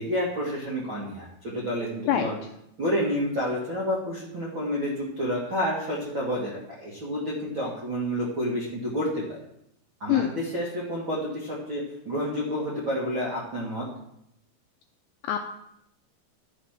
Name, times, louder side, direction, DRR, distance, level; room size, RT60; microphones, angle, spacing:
voice 1, 0.0-2.4 2.8-9.4 10.0-13.8, equal, 60° right, -5 dB, 1.2 m, -29 dB
voice 2, 2.1-2.3 10.1-10.3 15.3-15.4, left 12 dB, 85° left, 5 dB, 2.4 m, -24 dB
13.0 x 6.4 x 5.8 m, 0.79 s
omnidirectional pair, 5.7 m